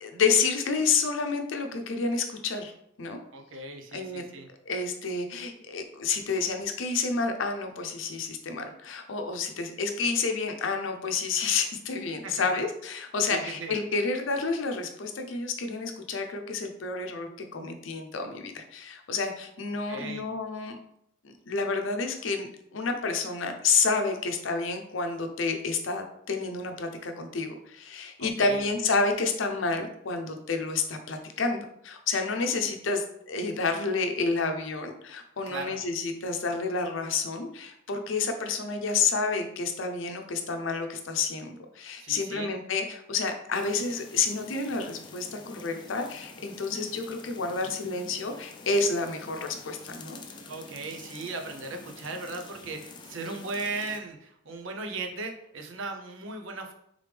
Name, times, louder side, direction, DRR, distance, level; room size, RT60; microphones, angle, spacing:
voice 1, 0.0-2.7 3.0-3.2 3.9-4.2 4.7-20.8 21.2-50.2, left 4 dB, 80° left, 5 dB, 0.6 m, -29 dB
voice 2, 3.3-4.5 12.2-12.6 13.3-13.7 19.9-20.3 28.2-28.7 35.5-35.8 42.0-42.5 50.5-56.7, right 3 dB, 85° right, 4 dB, 0.6 m, -37 dB
sound 1, 43.5-54.0, left 3 dB, 25° left, 0.3 m, -47 dB
3.6 x 3.4 x 3.3 m, 0.73 s
head